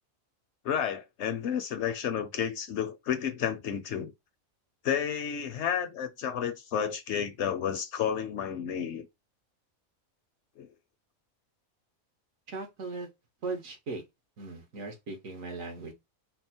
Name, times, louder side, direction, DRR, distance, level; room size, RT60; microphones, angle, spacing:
voice 1, 0.6-4.1 4.8-9.1 10.6-10.7, left 8 dB, 65° left, 0.8 m, -31 dB
voice 2, 12.5-13.1 13.4-14.0 14.4-15.9, right 3 dB, 70° right, 1.5 m, -38 dB
4.1 x 2.0 x 4.2 m
omnidirectional pair, 1.4 m